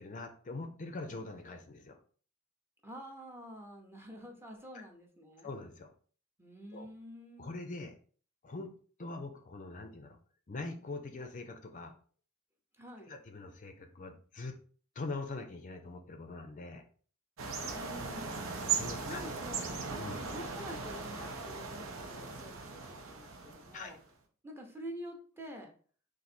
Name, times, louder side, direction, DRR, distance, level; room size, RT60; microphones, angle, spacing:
voice 1, 0.0-2.0 4.7-4.8 5.4-5.9 6.7-6.9 7.4-7.9 8.4-8.7 9.0-10.2 10.5-11.9 13.1-14.5 15.0-16.8 18.8-19.2 20.0-20.2 23.7-23.9, left 3 dB, 40° left, 5 dB, 0.5 m, -43 dB
voice 2, 2.8-5.5 6.4-7.5 12.8-13.1 17.7-19.7 20.2-24.0 24.4-25.7, equal, 10° right, 2 dB, 0.7 m, -48 dB
sound 1, 17.4-24.0, right 5 dB, 75° right, 0.8 m, -38 dB
3.9 x 2.6 x 4.2 m, 0.43 s
head